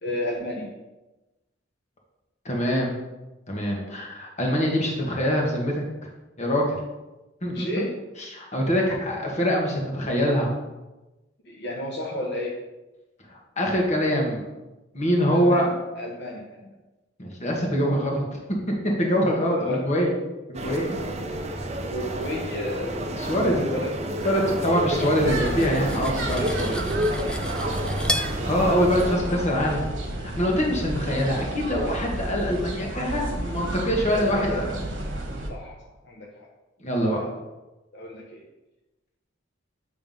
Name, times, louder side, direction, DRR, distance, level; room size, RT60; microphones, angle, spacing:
voice 1, 0.0-0.7 5.0-5.1 7.5-7.9 11.5-12.5 15.3-16.7 19.4-19.8 21.9-23.1 23.4-23.9 34.1-34.5 35.5-35.8 36.0-36.5 37.1-37.3 37.9-38.4, left 1 dB, 60° left, -2 dB, 1.0 m, -32 dB
voice 2, 2.4-2.9 3.5-5.8 6.4-6.8 7.4-7.7 8.2-10.5 13.3-14.4 14.9-15.7 17.2-18.2 18.8-20.1 20.5-20.9 23.2-23.7 24.2-26.9 28.5-29.9 30.2-34.8 36.8-37.2, equal, 35° left, -1 dB, 1.4 m, -24 dB
sound 1, 20.5-29.2, right 1 dB, 35° right, 0.7 m, -30 dB
Cutlery silverware, 25.1-28.3, left 1 dB, 5° left, 0.4 m, -33 dB
sound 2, 25.2-35.5, right 1 dB, 75° right, 1.2 m, -32 dB
7.5 x 3.4 x 5.3 m, 1.1 s
head